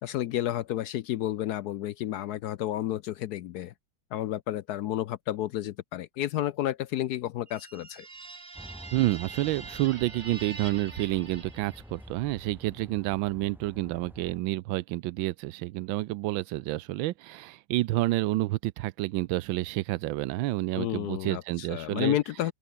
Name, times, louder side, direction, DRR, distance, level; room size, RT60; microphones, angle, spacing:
voice 1, 0.0-3.7 4.1-8.1 20.7-22.5, left 13 dB, 75° left, 0.9 m, -31 dB
sound 1, 7.5-12.2, right 4 dB, 55° right, 4.6 m, -44 dB
sound 2, 8.5-14.4, equal, ahead, 1.5 m, -49 dB
voice 2, 8.9-22.2, right 17 dB, 75° right, 1.3 m, -29 dB
open air
omnidirectional pair, 2.3 m